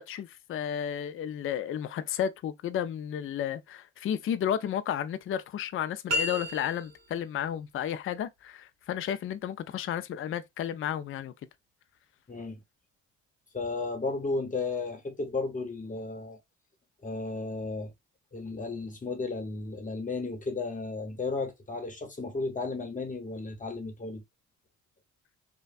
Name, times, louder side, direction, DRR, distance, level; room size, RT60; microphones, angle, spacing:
voice 1, 0.0-11.3, left 9 dB, 45° left, 0.4 m, -32 dB
sound 1, 6.1-7.2, left 1 dB, 60° right, 1.2 m, -31 dB
voice 2, 12.3-12.6 13.5-16.4 17.0-17.9 18.3-24.2, left 3 dB, 25° left, 1.1 m, -34 dB
3.2 x 2.2 x 2.4 m
cardioid pair, 90°, 30 cm